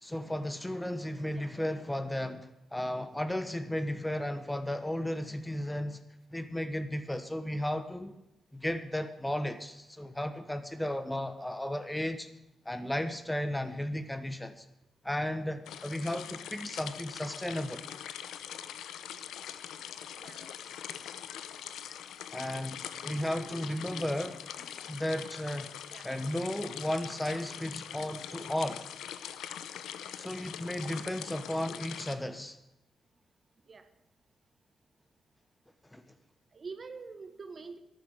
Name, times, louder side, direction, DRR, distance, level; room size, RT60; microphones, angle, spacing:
voice 1, 0.0-6.0 6.3-8.2 8.5-12.3 12.6-14.7 15.0-17.9 20.6-20.7 22.3-24.4 24.9-25.7 26.0-28.8 30.2-32.6 35.9-36.0, left 1 dB, 10° left, 10 dB, 1.2 m, -34 dB
voice 2, 1.3-1.7 17.9-18.0 18.8-18.9 19.2-19.3 20.1-20.5 23.0-24.3 24.6-24.7 25.9-26.1 30.8-30.9 33.7-33.9 36.5-37.8, right 4 dB, 45° right, 9 dB, 1.6 m, -47 dB
sound 1, 15.7-32.2, left 10 dB, 85° left, 0.7 m, -43 dB
12.0 x 9.4 x 8.0 m, 0.88 s
cardioid pair, 65°, 0 cm